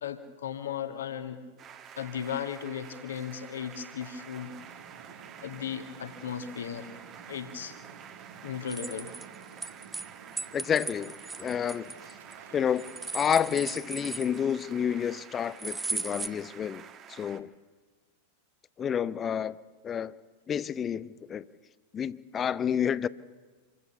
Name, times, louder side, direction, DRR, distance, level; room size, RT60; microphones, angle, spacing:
voice 1, 0.0-1.4 2.0-4.5 5.4-7.0 7.3-7.8 8.4-9.1, left 8 dB, 65° left, 7 dB, 1.7 m, -36 dB
sound 1, 1.6-17.4, right 8 dB, 30° right, 1.4 m, -49 dB
sound 2, 4.4-14.9, right 6 dB, 60° right, 1.4 m, -53 dB
sound 3, 8.7-10.1 10.4-12.3 12.8-14.6 15.6-16.3, right 3 dB, 10° right, 0.8 m, -37 dB
voice 2, 10.5-11.9 12.5-12.9 13.1-16.8 17.1-17.5 18.8-19.6 19.8-20.1 20.5-21.5 21.9-23.1, left 8 dB, 25° left, 18 dB, 0.6 m, -29 dB
26.5 x 15.0 x 7.0 m, 1.4 s
figure-of-eight pair, 90°, 0 cm